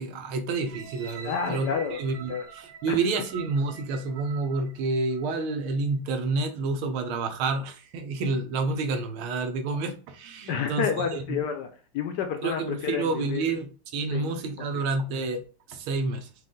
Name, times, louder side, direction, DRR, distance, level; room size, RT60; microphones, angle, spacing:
voice 1, 0.0-10.9 11.1-11.4 12.4-15.4 15.7-16.3, right 3 dB, 90° right, 1.6 m, -29 dB
sound 1, 0.7-5.6 6.2-6.3, right 7 dB, 60° right, 2.1 m, -46 dB
voice 2, 1.2-2.0 2.3-2.5 2.9-3.0 10.5-13.5 14.1-14.3 14.6-14.9, left 7 dB, 70° left, 1.1 m, -30 dB
5.0 x 2.5 x 3.7 m
omnidirectional pair, 2.2 m